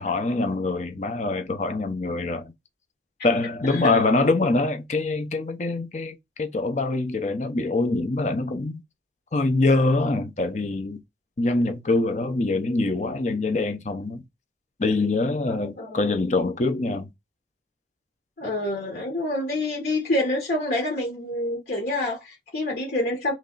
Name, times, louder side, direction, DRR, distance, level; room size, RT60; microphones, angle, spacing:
voice 1, 0.0-2.5 3.2-8.8 9.3-11.0 11.4-14.2 14.8-17.1, left 2 dB, 40° left, 0.7 m, -24 dB
voice 2, 3.6-4.0 15.5-16.1 18.4-23.3, left 1 dB, 55° left, 1.2 m, -27 dB
3.4 x 3.2 x 3.9 m
head